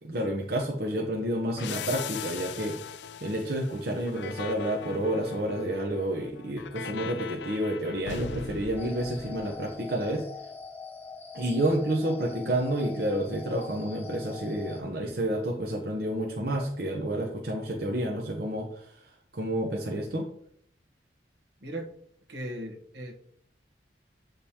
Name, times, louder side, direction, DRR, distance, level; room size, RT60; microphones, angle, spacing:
voice 1, 0.0-2.7 3.2-10.2 11.3-20.3, right 1 dB, 60° right, 0 dB, 0.8 m, -30 dB
sound 1, 1.6-10.0, left 7 dB, 75° left, 0.4 m, -40 dB
sound 2, 8.8-14.8, left 4 dB, 10° left, 0.7 m, -43 dB
voice 2, 22.3-23.1, right 1 dB, 75° right, 1 dB, 1.2 m, -37 dB
8.5 x 5.1 x 2.9 m, 0.67 s
head